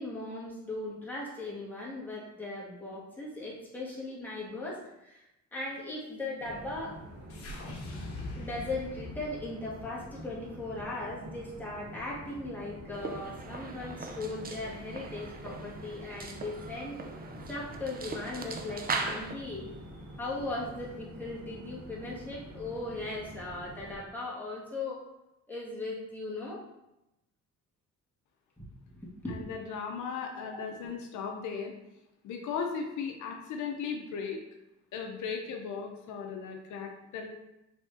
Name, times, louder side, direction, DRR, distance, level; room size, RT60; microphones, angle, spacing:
voice 1, 0.0-5.2 5.5-7.0 8.3-17.0 17.5-19.7 20.2-25.0 25.5-26.6 28.9-29.4, left 2 dB, 5° left, -6 dB, 1.5 m, -38 dB
sound 1, 6.4-24.0, equal, 55° right, 1.4 m, -47 dB
sound 2, 7.3-11.6, left 2 dB, 50° left, 1.1 m, -43 dB
sound 3, 12.9-19.3, right 4 dB, 30° right, 0.5 m, -39 dB
voice 2, 29.3-31.7 32.2-34.4 34.9-37.3, left 6 dB, 75° left, 2 dB, 0.7 m, -37 dB
4.6 x 3.5 x 2.7 m, 0.90 s
cardioid pair, 90°, 30 cm